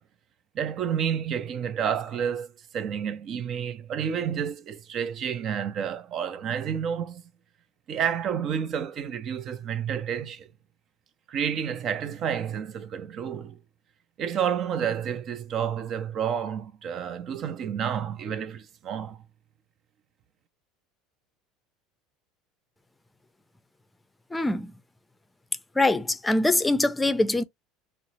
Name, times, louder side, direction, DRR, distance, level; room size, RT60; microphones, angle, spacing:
voice 1, 0.6-7.2 7.9-10.5 11.3-13.6 14.2-19.2, right 8 dB, 50° right, 0.5 m, -30 dB
voice 2, 24.3-24.7 25.8-27.4, left 2 dB, 10° left, 0.5 m, -23 dB
3.8 x 2.1 x 2.9 m
hypercardioid pair, 90°, 0 cm